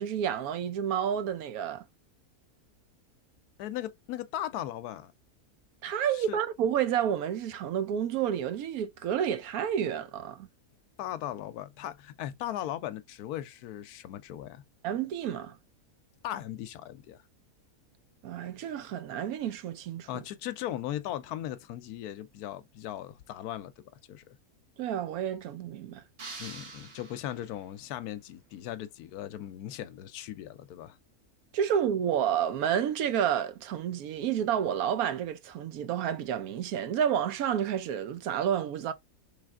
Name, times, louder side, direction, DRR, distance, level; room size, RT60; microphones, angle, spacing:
voice 1, 0.0-1.8 5.8-10.5 14.8-15.6 18.2-20.1 24.8-26.0 31.5-38.9, right 9 dB, 75° right, 1.1 m, -30 dB
voice 2, 3.6-5.1 6.1-6.4 11.0-14.6 16.2-17.2 20.1-23.7 24.1-24.4 26.4-31.0, left 12 dB, 80° left, 1.1 m, -38 dB
sound 1, 26.2-27.7, right 4 dB, 40° right, 1.3 m, -45 dB
3.8 x 3.3 x 3.5 m
omnidirectional pair, 1.6 m